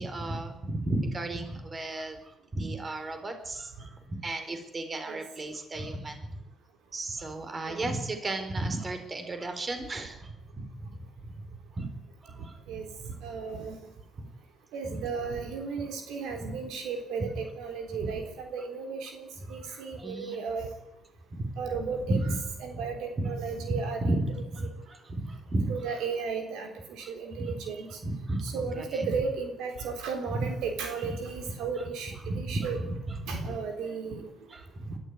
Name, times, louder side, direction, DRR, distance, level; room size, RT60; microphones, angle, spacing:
voice 1, 0.0-6.3 6.9-11.4 11.8-11.9 12.2-12.6 14.2-14.3 14.8-15.0 16.3-16.5 18.0-18.1 19.4-19.6 19.9-20.4 21.3-21.6 22.1-22.4 22.7-22.8 23.2-23.3 23.6-25.7 27.0-27.1 27.4-27.5 28.0-29.1 29.8-29.9 30.3-30.5 31.0-31.2 31.8-31.9 32.3-33.5 34.5-35.0, right 2 dB, 30° right, 7 dB, 4.0 m, -34 dB
voice 2, 13.2-13.8 14.7-20.7 21.6-22.2 22.6-24.2 25.7-27.9 28.5-32.8 33.3-34.2, right 5 dB, 90° right, 5 dB, 3.6 m, -34 dB
21.5 x 13.5 x 9.5 m, 0.85 s
cardioid pair, 90°, 0 cm